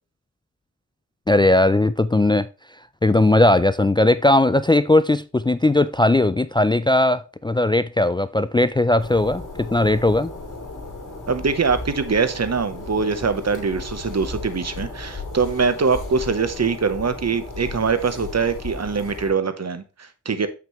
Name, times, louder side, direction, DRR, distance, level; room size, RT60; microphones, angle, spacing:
voice 1, 1.3-2.5 3.0-10.3, left 2 dB, 15° left, 0.3 m, -18 dB
sound 1, 9.0-19.3, left 3 dB, 85° left, 2.6 m, -35 dB
voice 2, 11.3-20.5, right 5 dB, 60° right, 0.9 m, -23 dB
7.4 x 6.0 x 3.1 m
wide cardioid pair, 55°, 30 cm